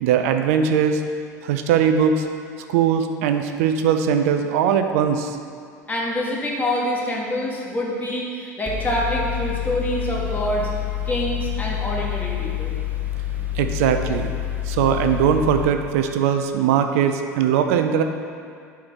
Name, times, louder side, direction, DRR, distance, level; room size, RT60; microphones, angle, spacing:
voice 1, 0.0-1.0 1.4-2.3 2.7-5.4 13.5-14.3 14.6-18.0, right 8 dB, 60° right, 6 dB, 0.4 m, -20 dB
voice 2, 5.9-10.7 11.0-12.7, equal, 20° left, -4 dB, 1.4 m, -26 dB
Mechanical fan, 8.7-15.6, left 11 dB, 15° right, 0.8 m, -27 dB
4.7 x 4.6 x 6.0 m, 2.2 s
figure-of-eight pair, 70°, 9 cm